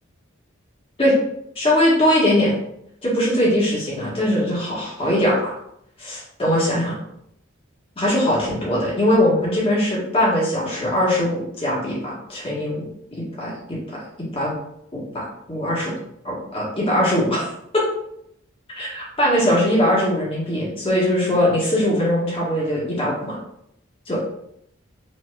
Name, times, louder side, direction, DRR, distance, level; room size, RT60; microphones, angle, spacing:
voice 1, 1.5-2.5 3.0-5.5 6.0-7.0 7.9-13.8 14.3-14.5 15.1-16.0 16.2-17.8 18.8-23.4 24.1-24.2, left 1 dB, 30° left, -6 dB, 1.7 m, -21 dB
5.3 x 3.3 x 2.5 m, 0.75 s
head